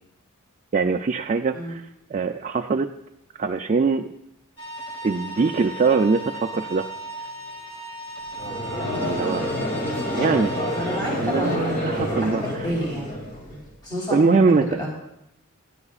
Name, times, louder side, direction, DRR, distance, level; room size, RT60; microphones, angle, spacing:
voice 1, 0.7-1.8 2.1-2.9 3.4-4.1 5.0-6.9 9.0-9.7 10.1-10.5 11.2-12.7 14.1-14.8, right 4 dB, 35° right, 5 dB, 0.3 m, -22 dB
sound 1, 4.6-11.0, right 1 dB, 60° left, 2.4 m, -36 dB
Conversation / Crowd, 8.3-13.6, equal, 40° left, 2.5 m, -28 dB
voice 2, 10.7-11.6 11.9-13.1 13.5-14.9, equal, 20° left, -4 dB, 3.6 m, -30 dB
16.0 x 10.5 x 2.4 m, 0.83 s
head